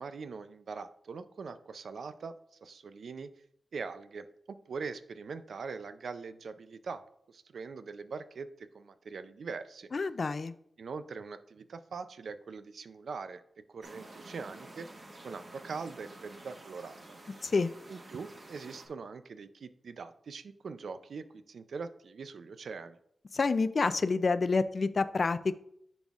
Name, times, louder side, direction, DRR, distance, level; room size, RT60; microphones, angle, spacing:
voice 1, 0.0-3.3 3.7-7.0 7.3-9.9 10.8-13.4 13.7-14.9 15.2-17.0 17.9-23.0, right 5 dB, 80° right, 11 dB, 0.4 m, -42 dB
voice 2, 9.9-10.5 17.4-17.7 23.3-25.5, left 4 dB, 50° left, 13 dB, 0.3 m, -28 dB
sound 1, 13.8-18.9, right 2 dB, 45° right, 1.2 m, -51 dB
10.5 x 4.0 x 2.4 m, 0.70 s
wide cardioid pair, 85°, 0 cm